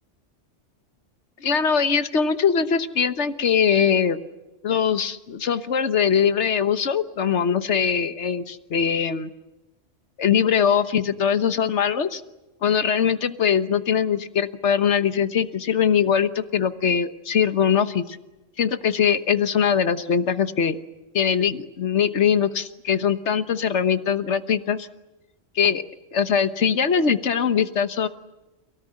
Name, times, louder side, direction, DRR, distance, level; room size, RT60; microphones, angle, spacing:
voice 1, 1.4-4.2 4.6-9.3 10.2-12.2 12.6-18.2 18.6-20.8 21.1-24.9 25.5-25.8 26.1-28.1, left 7 dB, 65° left, 11 dB, 1.5 m, -22 dB
29.5 x 17.5 x 10.0 m, 1.1 s
omnidirectional pair, 1.3 m